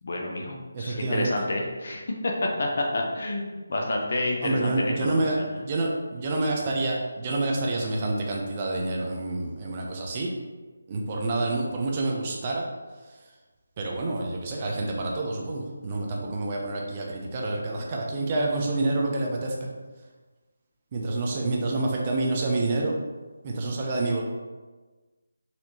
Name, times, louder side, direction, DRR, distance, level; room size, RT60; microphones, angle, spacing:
voice 1, 0.0-5.5, left 2 dB, 55° left, 0 dB, 0.7 m, -29 dB
voice 2, 0.7-1.3 4.4-10.3 10.9-12.6 13.8-19.7 20.9-22.9 23.4-24.2, right 2 dB, 30° right, 0 dB, 0.5 m, -28 dB
4.2 x 2.8 x 2.7 m, 1.3 s
figure-of-eight pair, 160°, 0 cm